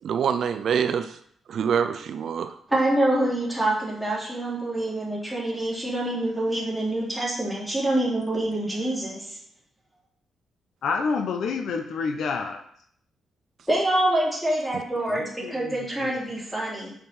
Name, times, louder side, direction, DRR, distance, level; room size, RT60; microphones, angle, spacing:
voice 1, 0.0-1.2 1.5-2.6 14.7-14.8, right 7 dB, 55° right, 9 dB, 0.5 m, -25 dB
voice 2, 2.7-9.4 13.7-16.9, right 1 dB, ahead, -6 dB, 2.9 m, -26 dB
voice 3, 10.8-12.6 15.1-16.1, left 5 dB, 65° left, 6 dB, 0.9 m, -29 dB
7.0 x 6.1 x 5.5 m, 0.65 s
cardioid pair, 165°, 0 cm